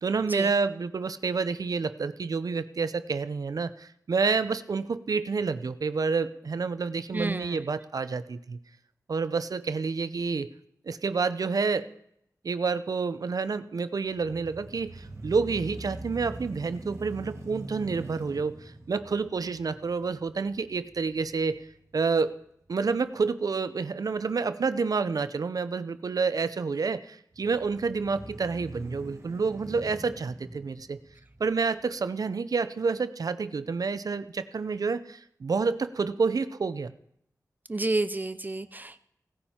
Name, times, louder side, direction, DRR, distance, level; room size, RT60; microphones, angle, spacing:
voice 1, 0.0-8.6 9.1-10.5 10.9-11.9 12.4-21.6 21.9-22.4 22.7-31.0 31.4-36.9, right 4 dB, 70° right, 13 dB, 0.6 m, -29 dB
voice 2, 7.1-7.6 37.7-39.0, right 2 dB, 30° right, 13 dB, 0.5 m, -30 dB
sound 1, 14.1-22.2 22.7-22.8 27.3-31.8, right 2 dB, 45° right, 2.2 m, -44 dB
17.0 x 9.9 x 4.4 m, 0.74 s
wide cardioid pair, 100°, 7 cm